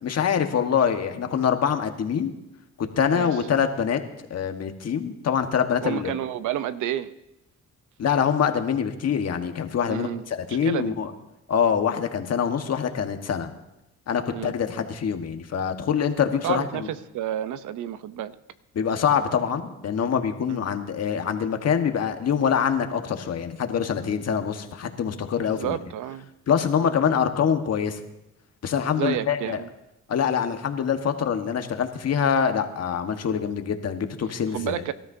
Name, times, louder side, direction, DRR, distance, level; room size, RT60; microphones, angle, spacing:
voice 1, 0.0-2.3 3.0-4.0 4.3-6.1 8.0-11.1 11.5-13.5 14.1-16.9 18.7-25.8 26.5-28.0 28.6-29.6 30.1-34.8, left 7 dB, 55° left, 6 dB, 1.4 m, -25 dB
voice 2, 5.8-7.1 9.8-11.0 14.3-14.6 16.4-18.3 20.5-20.6 25.4-26.3 26.8-26.9 28.9-29.7 34.5-34.9, right 11 dB, 80° right, 13 dB, 0.8 m, -30 dB
24.5 x 13.0 x 2.7 m, 0.92 s
cardioid pair, 90°, 30 cm